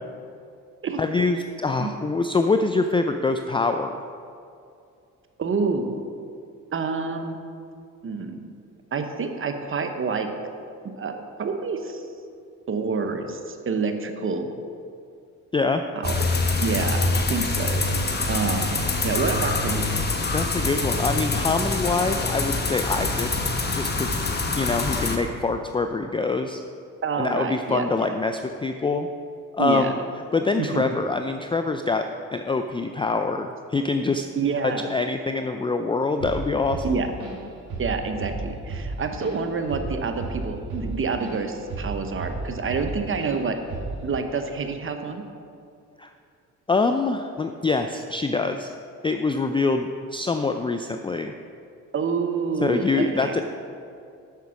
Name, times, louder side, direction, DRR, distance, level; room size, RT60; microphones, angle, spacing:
voice 1, 1.0-4.0 15.5-15.8 20.3-23.3 23.7-24.2 24.6-26.6 27.2-29.1 29.5-29.9 30.3-32.0 32.3-34.3 34.6-37.0 46.0-46.1 46.7-48.7 49.0-51.3 52.6-53.4, left 3 dB, 15° left, 7 dB, 0.4 m, -25 dB
voice 2, 5.4-6.0 6.7-7.4 8.0-8.5 8.9-10.3 11.0-12.0 12.7-14.5 16.0-16.2 16.6-17.9 18.3-18.8 19.0-19.9 27.0-28.1 29.6-29.9 30.6-30.8 34.4-34.9 36.8-37.1 37.8-43.6 44.0-45.2 51.9-53.4, right 4 dB, 40° right, 6 dB, 1.0 m, -27 dB
sound 1, 16.0-25.2, left 3 dB, 30° left, 1.1 m, -25 dB
Drum kit / Drum, 36.2-36.5 36.7-37.5 37.7-38.0 38.2-41.4 41.7-42.9 43.2-43.4 43.7-44.0, right 3 dB, 70° right, 2.3 m, -32 dB
8.2 x 6.0 x 5.8 m, 2.4 s
cardioid pair, 75°, 32 cm